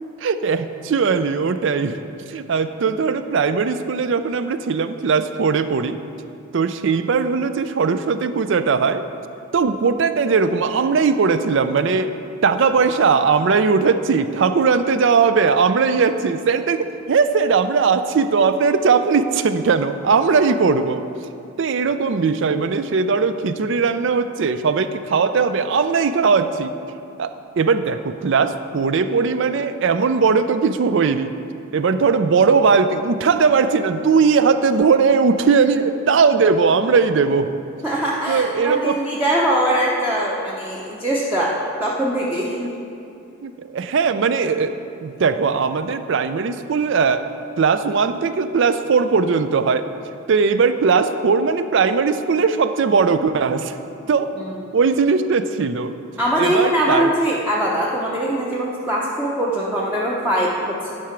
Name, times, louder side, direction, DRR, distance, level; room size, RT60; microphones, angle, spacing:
voice 1, 0.2-2.0 2.3-6.0 6.5-9.0 9.5-12.1 12.4-21.0 21.6-26.7 27.2-31.3 31.7-37.5 38.3-39.0 43.4-47.2 47.6-49.9 50.3-53.8 54.1-54.3 54.7-55.9 56.4-57.1, right 5 dB, 60° right, 11 dB, 0.4 m, -19 dB
voice 2, 37.8-41.5 41.8-42.7 54.4-54.6 56.2-60.9, right 1 dB, 10° right, -6 dB, 0.7 m, -22 dB
10.5 x 4.9 x 5.8 m, 2.7 s
head